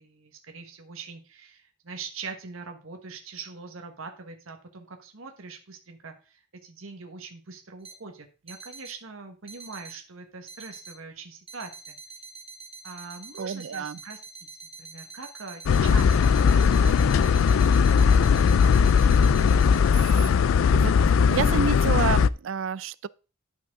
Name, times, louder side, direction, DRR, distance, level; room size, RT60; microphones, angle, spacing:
voice 1, 0.0-12.0 12.8-17.4 17.6-18.5, right 4 dB, 90° right, 1.4 m, -43 dB
sound 1, 7.8-8.0 8.5-9.0 9.5-10.0 10.5-10.9 11.5-20.3, right 5 dB, 30° right, 1.0 m, -44 dB
voice 2, 13.4-14.0 20.7-20.9 21.3-23.1, right 7 dB, 70° right, 0.4 m, -29 dB
sound 2, 15.7-22.3, left 6 dB, 75° left, 0.3 m, -19 dB
11.5 x 5.9 x 3.7 m
head